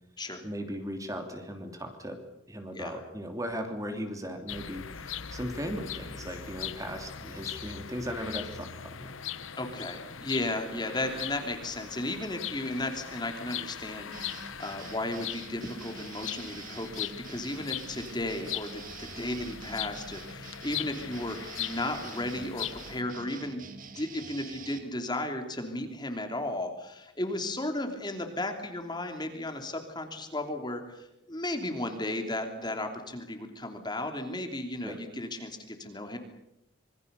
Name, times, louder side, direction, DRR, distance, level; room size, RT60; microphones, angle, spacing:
voice 1, 0.4-2.2 2.5-9.1 34.8-35.0, equal, 15° right, 5 dB, 3.1 m, -37 dB
sound 1, 4.5-23.0, left 9 dB, 85° left, 1.2 m, -40 dB
voice 2, 9.6-36.2, left 1 dB, 20° left, 5 dB, 3.0 m, -35 dB
sound 2, 14.1-24.8, right 4 dB, 45° right, 2.6 m, -46 dB
26.5 x 23.5 x 6.9 m, 0.85 s
head